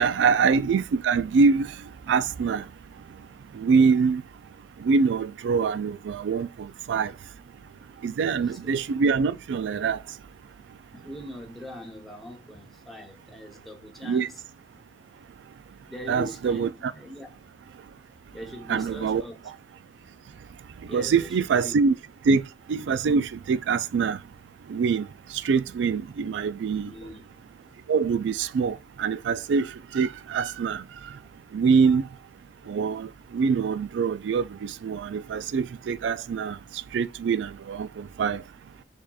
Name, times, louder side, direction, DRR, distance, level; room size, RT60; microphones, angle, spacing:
voice 1, 0.0-1.7 2.1-2.6 3.6-4.2 4.8-7.1 8.0-10.0 14.0-14.3 16.1-16.9 18.7-19.2 20.9-22.0 22.3-22.4 22.7-24.2 24.7-25.1 25.4-26.9 27.9-29.7 29.9-30.8 31.5-32.0 32.7-33.1 33.3-36.6 36.9-38.4, right 5 dB, 85° right, 0.3 m, -24 dB
voice 2, 8.4-8.8 10.9-14.4 15.9-16.7 16.9-17.3 18.3-19.4 20.8-21.7 26.8-27.2, equal, ahead, 0.9 m, -41 dB
6.5 x 2.8 x 2.3 m
head